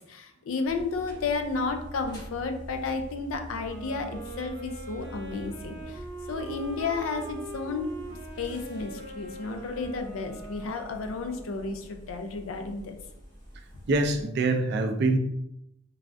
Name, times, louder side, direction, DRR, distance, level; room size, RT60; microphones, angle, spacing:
voice 1, 0.1-6.0 6.3-7.9 8.4-13.0, left 4 dB, 75° left, 6 dB, 0.4 m, -32 dB
sound 1, 0.6-14.2, right 1 dB, 20° left, 0.6 m, -45 dB
Wind instrument woodwind instrument, 3.5-11.8, right 2 dB, 75° right, 0.9 m, -42 dB
voice 2, 13.9-15.2, right 2 dB, 50° right, 5 dB, 0.3 m, -24 dB
3.2 x 2.3 x 2.5 m, 0.80 s
head